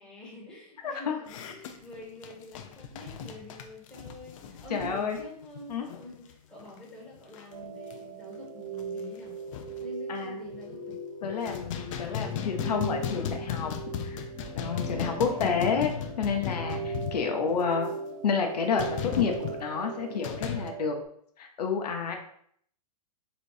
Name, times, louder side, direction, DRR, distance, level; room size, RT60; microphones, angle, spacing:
voice 1, 0.0-9.4 9.8-11.6 12.1-13.1 14.9-15.4, left 1 dB, 5° left, -6 dB, 1.4 m, -46 dB
voice 2, 0.8-1.2 4.7-5.2 5.7-5.9 10.1-10.4 11.2-13.7 14.0-14.2 14.6-15.9 16.2-18.0 18.2-20.9 21.4-22.1, left 6 dB, 85° left, 3 dB, 0.9 m, -29 dB
sound 1, 1.3-6.3 6.6-6.8 7.1-7.5 7.9-8.0 8.4-8.5 8.8-9.9 10.5-11.0 11.2-17.7 18.8-19.6 20.2-20.7, left 8 dB, 55° left, 0.6 m, -36 dB
sound 2, 7.5-21.0, right 4 dB, 40° right, 0.9 m, -39 dB
4.1 x 2.7 x 4.8 m, 0.65 s
hypercardioid pair, 150°, 20 cm